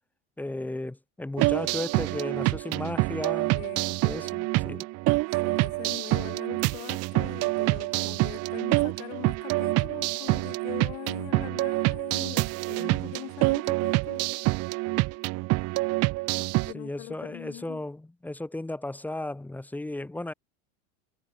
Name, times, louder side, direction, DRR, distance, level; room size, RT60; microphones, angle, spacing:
voice 1, 0.4-3.6 4.0-4.9 12.8-13.2 16.7-20.3, left 2 dB, 5° left, 2.0 m, -35 dB
sound 1, 1.4-16.7, right 22 dB, 50° right, 2.6 m, -27 dB
voice 2, 3.5-4.0 5.4-14.2 16.4-17.8, left 31 dB, 65° left, 3.9 m, -42 dB
supercardioid pair, 150°, 33 cm